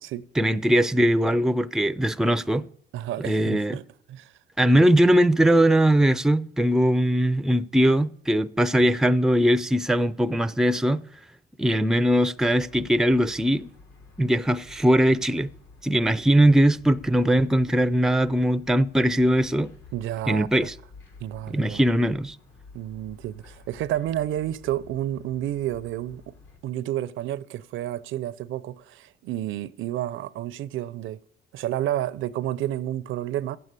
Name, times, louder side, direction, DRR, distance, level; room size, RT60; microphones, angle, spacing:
voice 1, 0.4-2.6 3.2-3.8 4.6-11.0 11.6-13.7 14.2-15.5 15.8-19.7 20.3-20.7 21.5-22.4, equal, 5° right, 0.4 m, -20 dB
voice 2, 2.9-3.8 4.1-4.3 19.9-20.7 21.2-21.8 22.7-26.3 26.6-31.2 31.5-33.6, right 12 dB, 80° right, 0.5 m, -30 dB
sound 1, 12.4-26.6, left 4 dB, 75° left, 3.8 m, -51 dB
9.0 x 7.7 x 8.2 m
cardioid pair, 90°, 20 cm